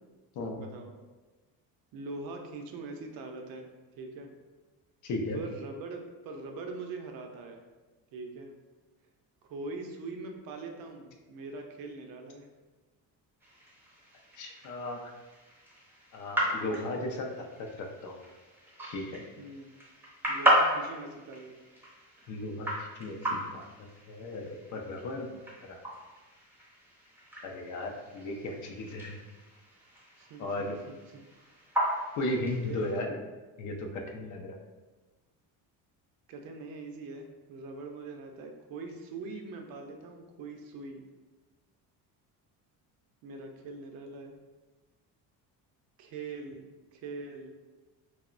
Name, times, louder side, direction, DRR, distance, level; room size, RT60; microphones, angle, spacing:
voice 1, 0.5-0.9 1.9-3.7 4.0-4.3 5.3-7.6 8.1-8.5 9.4-12.5 19.4-19.7 20.3-21.5 30.2-31.2 32.6-33.0 36.3-41.0 43.2-44.4 46.0-47.5, right 3 dB, 60° right, 4 dB, 0.5 m, -42 dB
voice 2, 5.0-5.4 14.4-15.1 16.1-18.2 18.9-19.2 22.3-23.7 24.1-25.3 25.6-25.8 27.4-29.2 30.4-30.8 32.2-33.2 33.6-34.6, left 1 dB, 50° left, 2 dB, 0.4 m, -36 dB
sound 1, 13.4-32.9, right 1 dB, 5° right, 0.5 m, -35 dB
2.9 x 2.0 x 2.4 m, 1.2 s
cardioid pair, 115°, 39 cm